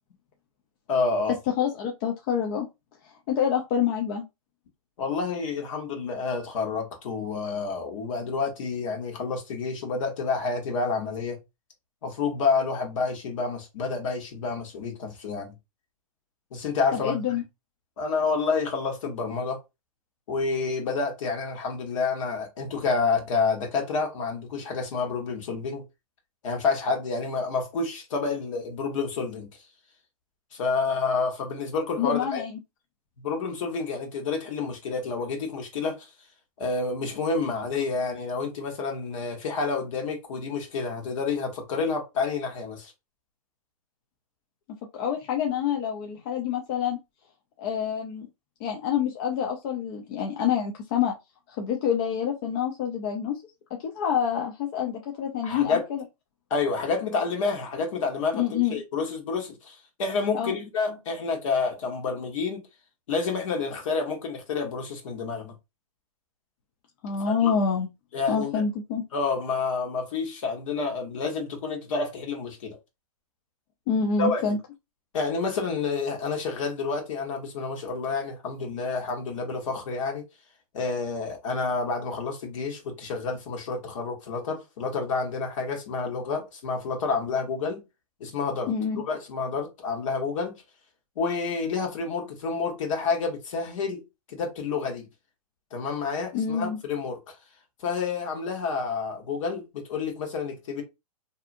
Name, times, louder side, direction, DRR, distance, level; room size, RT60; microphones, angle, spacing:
voice 1, 0.9-1.4 5.0-11.4 12.0-15.5 16.5-17.4 18.0-19.6 20.3-25.8 26.4-29.5 30.5-32.4 33.2-36.1 36.6-42.9 55.4-55.8 56.5-62.6 63.1-65.5 67.3-67.5 68.1-68.6 69.1-72.8 74.2-74.4 75.1-80.2 80.7-87.8 88.2-88.7 89.0-90.5 91.2-95.1 95.7-97.4 97.8-100.8, left 4 dB, 55° left, 1.2 m, -29 dB
voice 2, 1.6-2.7 3.3-4.2 16.9-17.4 32.0-32.5 44.9-47.0 47.6-48.3 48.6-51.1 51.5-53.4 53.8-56.0 58.3-58.8 60.3-60.6 67.0-67.9 68.3-69.0 73.9-74.6 88.7-89.0 96.3-96.8, left 7 dB, 40° left, 0.5 m, -27 dB
2.7 x 2.4 x 2.5 m
hypercardioid pair, 125°, 19 cm